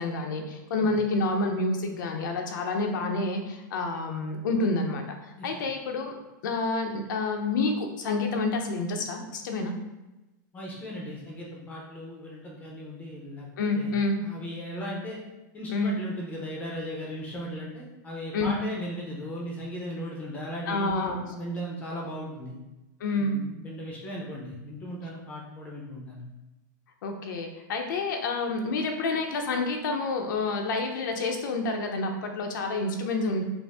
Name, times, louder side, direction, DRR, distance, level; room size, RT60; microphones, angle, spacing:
voice 1, 0.0-6.1 6.4-9.7 13.6-14.2 15.7-15.9 18.3-18.5 20.7-21.2 23.0-23.4 27.0-33.4, left 3 dB, 80° left, 3 dB, 0.6 m, -28 dB
voice 2, 10.5-13.5 13.7-13.9 14.2-15.2 15.5-22.5 23.2-26.3, equal, 15° left, -3 dB, 0.6 m, -37 dB
5.1 x 2.0 x 3.4 m, 1.0 s
supercardioid pair, 165°, 10 cm